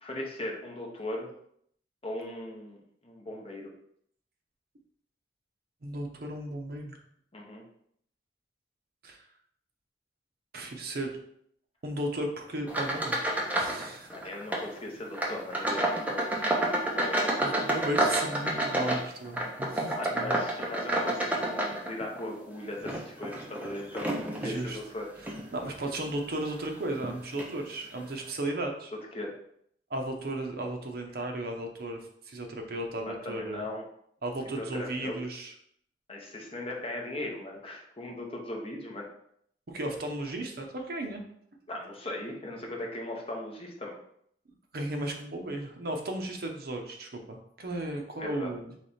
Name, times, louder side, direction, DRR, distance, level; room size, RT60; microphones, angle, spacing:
voice 1, 0.0-1.3 2.0-3.7 7.3-7.6 14.1-16.2 16.9-17.5 19.9-25.1 29.1-29.3 33.1-33.8 34.5-35.2 36.1-39.1 41.7-43.9 48.2-48.5, left 1 dB, 30° left, 0 dB, 0.9 m, -38 dB
voice 2, 5.8-7.0 9.0-9.3 10.5-11.1 11.8-14.3 17.4-20.4 24.4-24.8 25.2-28.9 29.9-33.6 34.2-35.5 39.7-41.2 44.7-48.7, right 1 dB, 55° right, 3 dB, 0.7 m, -35 dB
sound 1, 12.7-13.8 14.1-14.7 15.1-22.2 22.7-24.6 25.2-25.4 26.0-26.1 27.0-27.1 27.4-27.5, right 1 dB, 10° right, 0.6 m, -29 dB
3.4 x 3.2 x 4.1 m, 0.68 s
head